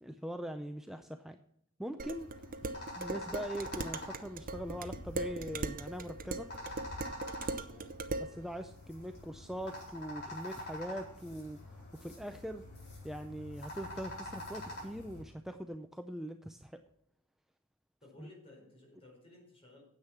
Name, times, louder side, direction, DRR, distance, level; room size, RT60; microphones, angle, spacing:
voice 1, 0.0-1.4 1.8-2.3 3.0-6.5 8.2-12.7 13.0-16.8 18.2-18.3, equal, ahead, 7 dB, 0.4 m, -42 dB
sound 1, 2.0-15.2, left 1 dB, 50° left, 4.5 m, -47 dB
Dishes pots and pans, 2.0-8.3, right 3 dB, 40° right, 0.7 m, -39 dB
voice 2, 7.5-7.9 18.0-19.8, left 2 dB, 25° left, -1 dB, 4.5 m, -57 dB
9.8 x 8.2 x 5.9 m, 0.74 s
head